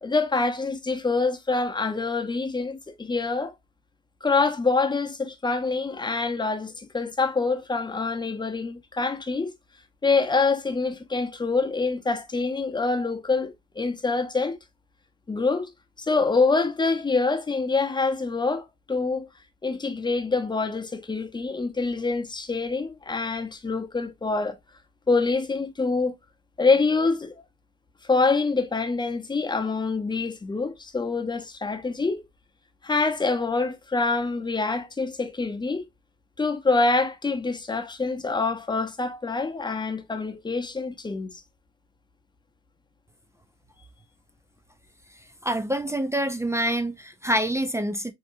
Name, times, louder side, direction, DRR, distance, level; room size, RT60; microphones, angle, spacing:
voice 1, 0.0-3.5 4.2-9.5 10.0-14.6 15.3-15.7 16.0-19.3 19.6-24.6 25.1-26.1 26.6-27.4 28.1-32.3 32.8-35.8 36.4-41.4, left 3 dB, 10° left, 0.7 m, -25 dB
voice 2, 45.4-48.1, right 1 dB, 10° right, 0.3 m, -26 dB
4.4 x 2.8 x 2.4 m
figure-of-eight pair, 50°, 37 cm